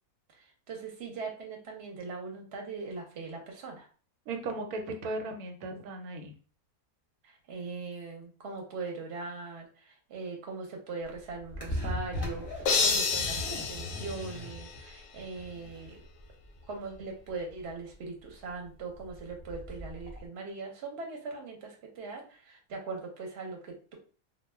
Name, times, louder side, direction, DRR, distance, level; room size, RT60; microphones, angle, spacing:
voice 1, 0.4-3.9 7.2-16.0 16.7-24.0, right 4 dB, 55° right, 1 dB, 0.9 m, -40 dB
voice 2, 4.3-6.3, right 2 dB, 90° right, 5 dB, 1.1 m, -36 dB
sound 1, 11.0-20.3, left 1 dB, 25° left, 0.6 m, -39 dB
sound 2, 12.7-15.0, left 5 dB, 70° left, 0.8 m, -30 dB
2.3 x 2.2 x 3.2 m, 0.39 s
omnidirectional pair, 1.5 m